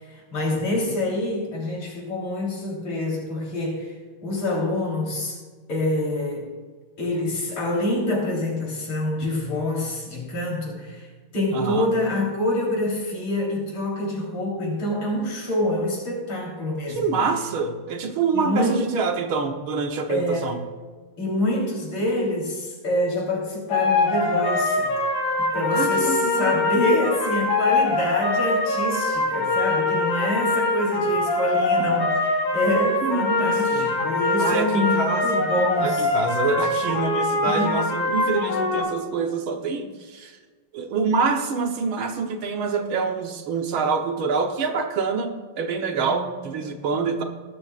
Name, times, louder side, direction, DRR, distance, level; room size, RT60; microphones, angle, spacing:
voice 1, 0.1-5.4 5.7-6.5 7.0-11.1 11.3-17.2 18.3-18.9 20.1-20.6 21.2-24.9 25.4-36.1 37.4-37.8 46.0-47.3, left 1 dB, 65° left, -2 dB, 4.5 m, -26 dB
voice 2, 11.5-11.9 17.0-20.6 25.7-26.7 33.0-33.9 34.4-35.5 35.8-40.4 40.7-47.2, right 5 dB, 70° right, 5 dB, 1.8 m, -26 dB
sound 1, 23.7-38.8, left 2 dB, 85° left, 3.3 m, -23 dB
19.5 x 12.5 x 2.5 m, 1.5 s
omnidirectional pair, 2.4 m